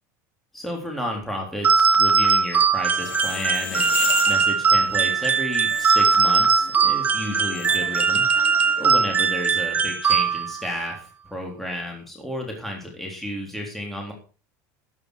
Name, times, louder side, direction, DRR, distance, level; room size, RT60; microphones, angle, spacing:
voice 1, 0.5-3.9 4.3-8.3 8.8-14.1, equal, ahead, 0 dB, 3.6 m, -32 dB
sound 1, 1.6-10.7, right 5 dB, 20° right, 1.3 m, -20 dB
sound 2, 2.9-9.4, left 14 dB, 75° left, 1.5 m, -36 dB
13.0 x 9.8 x 4.8 m, 0.36 s
supercardioid pair, 135°, 8 cm